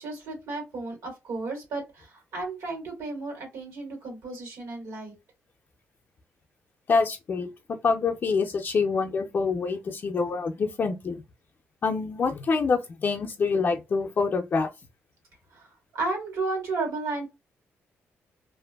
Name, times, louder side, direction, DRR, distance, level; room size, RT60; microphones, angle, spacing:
voice 1, 0.0-5.1 15.5-15.7 15.9-17.3, right 3 dB, 80° right, 1.5 m, -33 dB
voice 2, 6.9-11.2 11.8-14.7, left 4 dB, 45° left, 0.5 m, -26 dB
2.6 x 2.5 x 2.2 m
cardioid pair, 115°, 5 cm